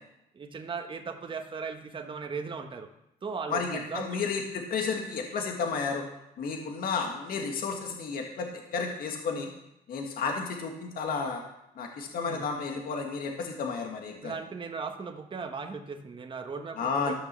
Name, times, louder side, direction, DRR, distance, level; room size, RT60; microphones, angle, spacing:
voice 1, 0.3-2.9 3.2-4.2 12.3-12.4 14.2-17.1, right 5 dB, 30° right, 5 dB, 1.3 m, -37 dB
voice 2, 3.5-6.0 6.4-9.5 9.9-11.4 11.8-14.3 16.8-17.1, left 5 dB, 60° left, 2 dB, 1.8 m, -32 dB
13.5 x 5.9 x 6.8 m, 0.85 s
cardioid pair, 110°, 17 cm